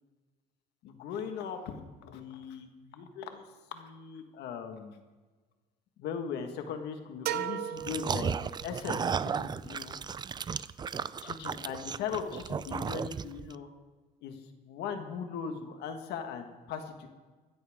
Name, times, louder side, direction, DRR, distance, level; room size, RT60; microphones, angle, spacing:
voice 1, 0.8-3.4 3.7-5.0 6.0-10.0 11.2-13.7 14.2-17.1, left 7 dB, 80° left, 6 dB, 1.5 m, -39 dB
sound 1, 7.3-9.0, right 11 dB, 70° right, 0.8 m, -36 dB
sound 2, 7.8-13.5, right 6 dB, 25° right, 0.4 m, -34 dB
15.0 x 14.0 x 3.6 m, 1.3 s
cardioid pair, 110°, 17 cm